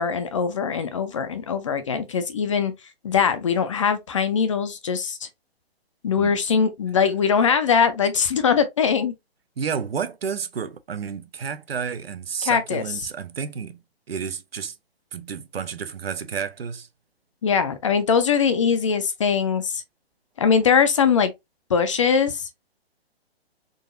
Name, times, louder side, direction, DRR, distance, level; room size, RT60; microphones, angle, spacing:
voice 1, 0.0-2.7 3.0-5.3 6.0-9.1 12.4-12.8 17.4-19.8 20.4-21.3 21.7-22.5, left 6 dB, 30° left, 0.5 m, -21 dB
voice 2, 9.6-13.8 14.1-14.7 15.1-16.9, right 6 dB, 70° right, 0.7 m, -31 dB
3.8 x 2.6 x 2.5 m
figure-of-eight pair, 135°, 31 cm